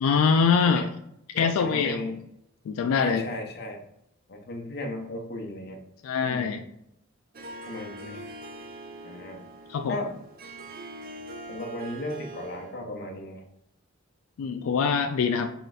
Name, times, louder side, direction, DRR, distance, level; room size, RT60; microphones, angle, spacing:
voice 1, 0.0-0.9 1.4-2.0 2.7-3.3 6.0-6.6 9.7-10.0 14.4-15.5, left 6 dB, 90° left, 8 dB, 0.3 m, -23 dB
voice 2, 1.3-2.2 2.9-3.8 4.3-5.8 6.2-6.5 7.7-8.2 9.0-9.4 9.9-10.1 11.5-13.4, left 1 dB, 50° left, 2 dB, 0.7 m, -35 dB
Harp, 7.3-12.8, right 1 dB, 45° right, 0.5 m, -43 dB
3.9 x 2.4 x 3.9 m, 0.78 s
head